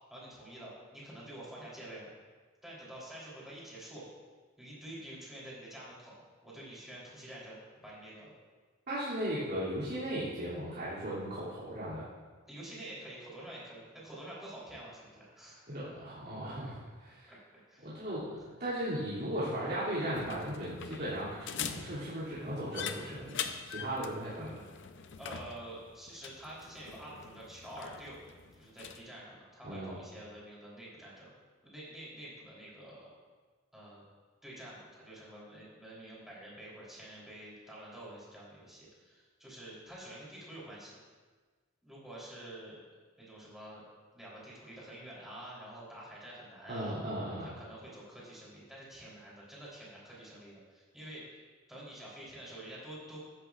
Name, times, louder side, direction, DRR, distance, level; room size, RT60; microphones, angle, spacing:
voice 1, 0.1-2.1 2.6-4.1 4.6-6.1 6.4-8.3 12.5-15.7 16.0-16.1 16.6-16.7 17.3-18.0 25.2-28.2 28.5-31.3 31.6-33.1 33.7-34.1 34.4-40.9 41.8-42.8 43.2-43.8 44.1-47.0 47.4-51.4 51.7-53.2, right 1 dB, ahead, -7 dB, 3.4 m, -48 dB
voice 2, 8.9-12.0 15.7-17.3 17.8-23.4 23.7-24.6 29.6-30.0 46.7-47.5, right 1 dB, 50° right, -11 dB, 2.7 m, -37 dB
sound 1, 20.1-29.0, left 7 dB, 60° left, 0.6 m, -43 dB
14.5 x 10.5 x 2.5 m, 1.4 s
head